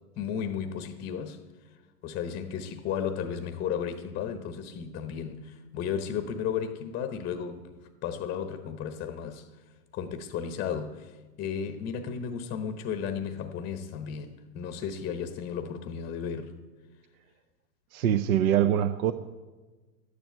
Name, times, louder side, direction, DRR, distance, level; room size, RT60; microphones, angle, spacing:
voice 1, 0.2-1.4 2.0-9.5 9.9-16.6, left 7 dB, 20° left, 0.8 m, -34 dB
voice 2, 17.9-19.1, right 10 dB, 60° right, 0.8 m, -24 dB
12.5 x 10.5 x 9.2 m
hypercardioid pair, 120°, 49 cm